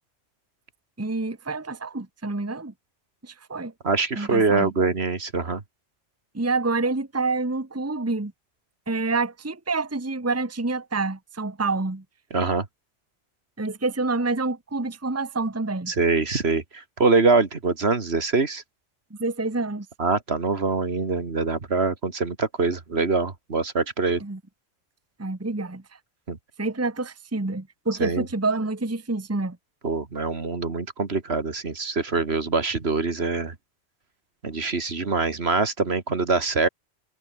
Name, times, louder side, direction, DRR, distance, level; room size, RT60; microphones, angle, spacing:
voice 1, 1.0-2.7 3.2-3.7 4.2-4.7 6.3-8.3 8.9-12.0 13.6-15.9 19.2-19.9 24.2-24.4 25.2-25.8 26.6-29.6, right 3 dB, 15° right, 1.2 m, -27 dB
voice 2, 3.8-5.6 12.3-12.7 15.9-18.6 20.0-24.2 26.3-26.4 28.0-28.3 29.8-33.5 34.4-36.7, right 4 dB, 60° right, 2.3 m, -24 dB
omnidirectional pair, 1.2 m